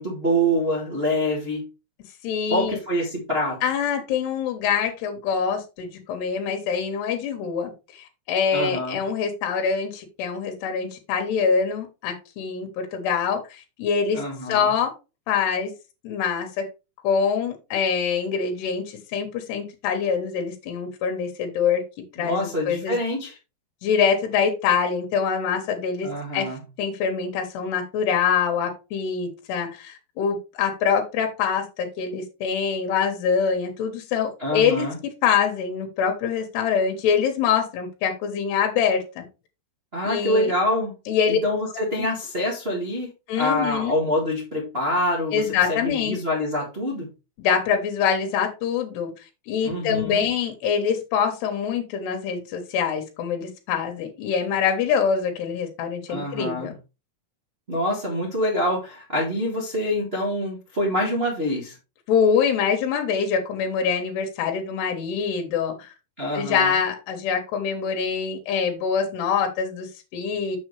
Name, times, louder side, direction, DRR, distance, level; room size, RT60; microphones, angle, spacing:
voice 1, 0.0-1.6 2.5-3.6 8.5-9.0 14.1-14.7 22.2-23.4 26.0-26.6 34.4-34.9 39.9-40.9 41.3-43.1 43.4-47.1 49.6-50.3 56.1-56.7 57.7-61.8 66.2-66.8, equal, 65° right, 0.6 m, -26 dB
voice 2, 2.2-2.8 3.6-14.2 14.5-14.9 15.3-15.7 16.0-16.7 17.0-21.8 22.1-23.0 23.8-26.5 26.8-39.2 40.1-40.5 41.1-41.4 42.0-42.1 43.3-44.0 45.3-46.2 47.4-49.1 49.5-56.7 62.1-65.9 66.3-70.6, left 6 dB, 85° left, 3.4 m, -24 dB
6.9 x 6.6 x 3.3 m
omnidirectional pair, 4.7 m